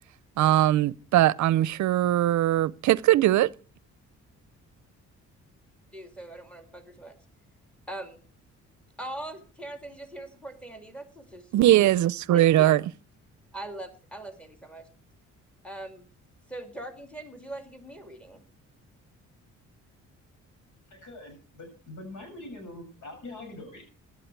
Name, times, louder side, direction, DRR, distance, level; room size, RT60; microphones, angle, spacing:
voice 1, 0.4-3.5 11.5-12.8, right 13 dB, 70° right, 0.6 m, -21 dB
voice 2, 5.9-7.1 7.9-8.2 9.0-12.8 13.5-14.9 15.6-16.1 16.5-18.4, right 1 dB, 5° left, 2.5 m, -41 dB
voice 3, 20.9-23.8, left 2 dB, 80° left, 7.2 m, -43 dB
16.0 x 11.5 x 4.6 m
cardioid pair, 90°, 30 cm